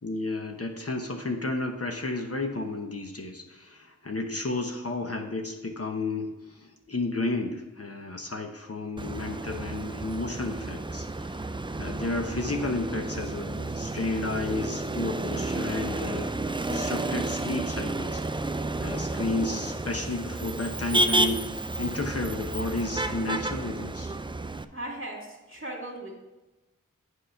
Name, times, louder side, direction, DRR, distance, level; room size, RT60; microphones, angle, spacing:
voice 1, 0.0-11.3 11.8-16.3 16.7-18.2 18.8-21.5 21.8-24.1, left 2 dB, 45° left, 3 dB, 0.9 m, -32 dB
Motor vehicle (road), 9.0-24.6, right 2 dB, 15° right, 0.4 m, -31 dB
voice 2, 24.7-26.1, right 1 dB, 40° right, -1 dB, 2.3 m, -37 dB
8.0 x 4.9 x 5.7 m, 1.1 s
wide cardioid pair, 55°, 33 cm